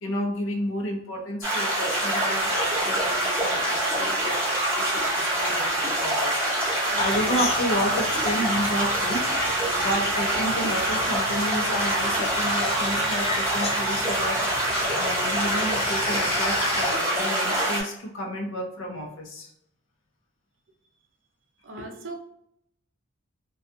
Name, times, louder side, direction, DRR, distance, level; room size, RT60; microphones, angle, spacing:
voice 1, 0.0-6.4 6.7-9.3 9.8-14.5 14.9-19.5, equal, 65° left, 0 dB, 0.6 m, -31 dB
sound 1, 1.4-17.8, right 1 dB, 10° right, 0.8 m, -25 dB
sound 2, 7.0-16.9, left 2 dB, 30° left, 0.4 m, -36 dB
voice 2, 21.6-22.2, right 2 dB, 60° right, 3 dB, 0.5 m, -38 dB
2.3 x 2.3 x 2.5 m, 0.76 s
head